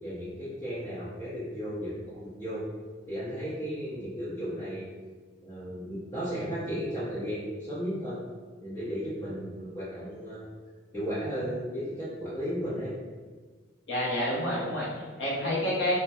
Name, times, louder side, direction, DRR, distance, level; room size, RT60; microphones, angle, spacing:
voice 1, 0.0-2.7 3.1-4.9 5.4-8.2 8.6-10.4 10.9-12.9, equal, 20° left, -13 dB, 0.7 m, -34 dB
voice 2, 13.9-15.9, left 1 dB, 75° left, -6 dB, 0.9 m, -29 dB
3.1 x 2.1 x 2.7 m, 1.5 s
head